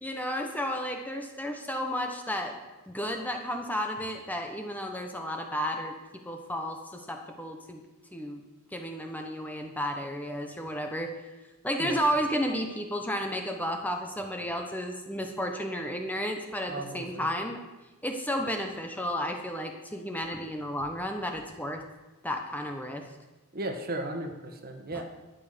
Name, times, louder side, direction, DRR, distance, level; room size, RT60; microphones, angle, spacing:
voice 1, 0.0-2.6 2.9-6.0 6.2-8.4 8.7-11.2 11.6-17.6 18.0-21.8 22.2-23.1 24.9-25.0, equal, 5° left, 3 dB, 1.1 m, -32 dB
voice 2, 16.6-17.2 23.5-25.0, right 1 dB, 45° right, 5 dB, 1.7 m, -35 dB
12.5 x 9.6 x 6.8 m, 1.2 s
head